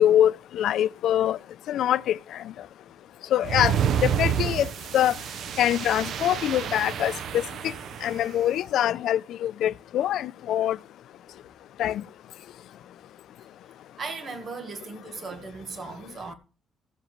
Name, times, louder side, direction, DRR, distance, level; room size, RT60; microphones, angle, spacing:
voice 1, 0.0-1.4 1.7-2.2 3.3-3.8 4.0-4.7 4.9-5.1 5.6-7.7 8.0-10.8 11.8-12.0, left 11 dB, 70° left, 0.4 m, -24 dB
sound 1, 3.4-8.3, right 8 dB, 60° right, 0.4 m, -29 dB
voice 2, 14.0-16.3, right 4 dB, 35° right, 1.3 m, -37 dB
16.0 x 7.3 x 3.1 m
cardioid pair, 165°, 0 cm